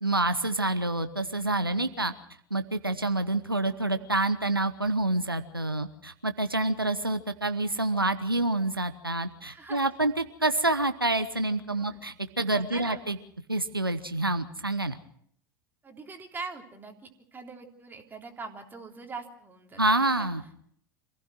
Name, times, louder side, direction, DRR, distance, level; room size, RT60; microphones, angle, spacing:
voice 1, 0.0-2.1 2.5-13.2 13.5-15.0 19.8-20.4, right 2 dB, 90° right, 10 dB, 1.0 m, -27 dB
voice 2, 9.5-9.8 11.7-12.1 12.4-13.0 15.8-16.9 17.3-20.1, right 4 dB, 15° right, 2 dB, 3.5 m, -42 dB
26.5 x 16.0 x 6.3 m, 0.66 s
figure-of-eight pair, 85°, 12 cm